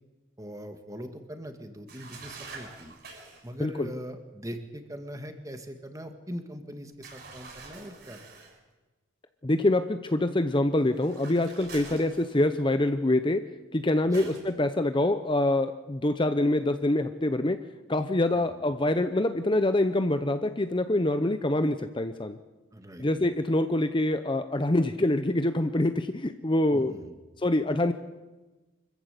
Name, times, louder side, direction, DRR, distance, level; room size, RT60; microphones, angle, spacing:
voice 1, 0.4-2.9 3.4-8.2 14.1-14.3 18.3-18.6 22.7-23.1 26.7-27.2, equal, 15° right, 7 dB, 1.8 m, -41 dB
sound 1, 1.9-3.5 7.0-8.6 10.9-12.7 14.1-14.5, right 4 dB, 50° right, 7.0 m, -46 dB
voice 2, 9.4-13.4 13.7-17.6 17.9-22.4 23.0-26.9 27.4-27.9, left 1 dB, 25° left, 9 dB, 0.7 m, -25 dB
25.0 x 14.5 x 8.3 m, 1.2 s
head